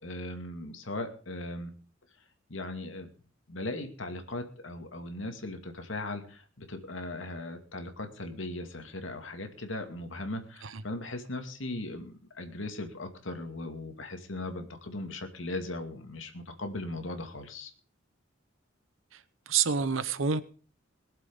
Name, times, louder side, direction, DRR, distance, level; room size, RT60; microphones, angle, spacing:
voice 1, 0.0-1.7 2.5-3.1 3.5-17.7, left 2 dB, 75° left, 2.3 m, -38 dB
voice 2, 19.1-20.4, right 6 dB, 85° right, 0.9 m, -29 dB
21.5 x 7.6 x 5.3 m
head